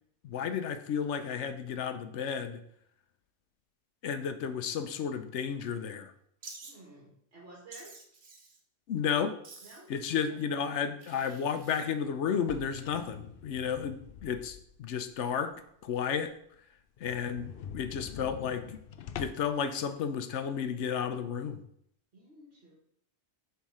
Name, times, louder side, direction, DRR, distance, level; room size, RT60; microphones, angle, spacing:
voice 1, 0.2-2.6 4.0-6.1 8.9-9.3 9.9-15.5 15.8-16.3 17.0-18.8 19.2-21.6, left 7 dB, 80° left, 10 dB, 1.0 m, -32 dB
Wild animals, 6.4-6.7 7.7-8.6 9.4-10.0 11.0-11.8, right 3 dB, 85° right, 1.4 m, -49 dB
voice 2, 6.6-7.9 9.6-9.9 10.2-10.4 22.1-22.7, right 2 dB, 65° right, -6 dB, 1.9 m, -52 dB
sound 1, 12.3-14.9 15.3-15.4 15.8-15.9 16.2-16.3 16.5-16.6 17.0-19.6, left 8 dB, 60° left, 0.6 m, -45 dB
7.1 x 3.6 x 4.8 m, 0.69 s
omnidirectional pair, 1.2 m